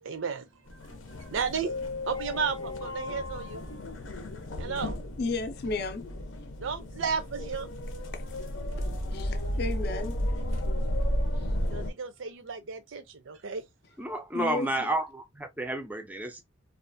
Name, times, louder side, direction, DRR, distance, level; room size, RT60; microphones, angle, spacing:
voice 1, 0.0-1.7 2.1-3.7 4.6-5.0 6.6-7.7 11.7-13.7, right 6 dB, 80° right, 0.5 m, -34 dB
sound 1, 0.7-11.9, left 1 dB, 90° left, 0.7 m, -33 dB
voice 2, 5.2-6.0 8.1-8.2 9.1-10.2 14.3-14.9, left 3 dB, 55° left, 0.5 m, -33 dB
voice 3, 14.0-16.4, right 1 dB, 10° right, 0.4 m, -31 dB
2.5 x 2.3 x 2.5 m
head